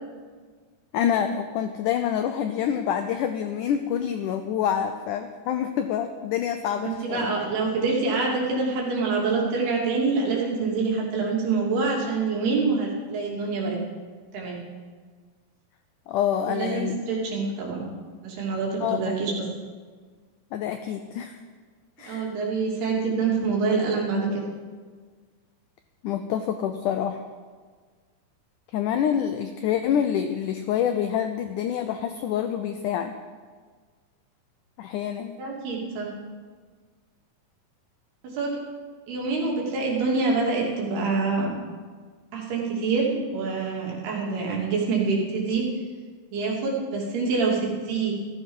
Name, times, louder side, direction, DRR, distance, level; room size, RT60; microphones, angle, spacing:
voice 1, 0.9-7.3 16.1-17.0 18.8-19.2 20.5-21.4 22.0-22.3 26.0-27.2 28.7-33.1 34.8-35.4, left 9 dB, 90° left, 7 dB, 1.8 m, -27 dB
voice 2, 6.8-13.8 14.3-14.6 16.5-17.9 18.2-19.3 22.0-24.4 35.4-36.1 38.3-38.5 39.1-41.6 42.3-45.6 46.3-48.1, right 4 dB, 85° right, -2 dB, 4.7 m, -26 dB
14.5 x 14.0 x 5.4 m, 1.6 s
omnidirectional pair, 4.4 m